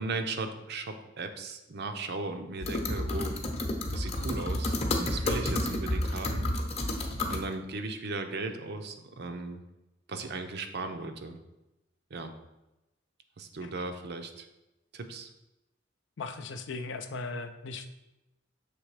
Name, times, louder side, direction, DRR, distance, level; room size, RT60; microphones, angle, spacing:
voice 1, 0.0-3.3 3.9-6.5 7.3-9.6 10.1-11.4 12.1-12.3 13.4-14.5 14.9-15.3, right 3 dB, 60° right, 7 dB, 0.6 m, -37 dB
sound 1, 2.6-7.4, left 1 dB, 35° left, 0.8 m, -30 dB
voice 2, 16.2-17.9, left 3 dB, 70° left, 8 dB, 0.5 m, -38 dB
6.7 x 3.3 x 4.8 m, 0.97 s
head